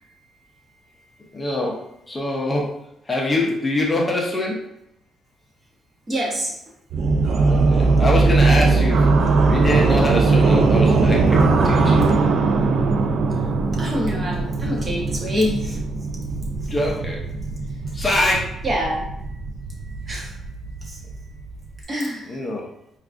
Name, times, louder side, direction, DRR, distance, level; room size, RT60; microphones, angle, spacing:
voice 1, 1.3-1.7 2.1-2.7 3.1-4.6 7.4-9.1 9.4-12.0 16.7-17.2 17.9-18.4 22.3-22.6, left 1 dB, 20° left, -2 dB, 0.5 m, -24 dB
voice 2, 6.1-6.6 13.7-15.8 16.6-16.7 18.6-19.1 20.0-20.5 20.8-21.0 21.8-22.4, equal, 25° right, -1 dB, 0.8 m, -26 dB
sound 1, 6.9-21.8, right 3 dB, 55° right, 0.3 m, -20 dB
4.5 x 2.3 x 2.4 m, 0.79 s
cardioid pair, 145°, 0 cm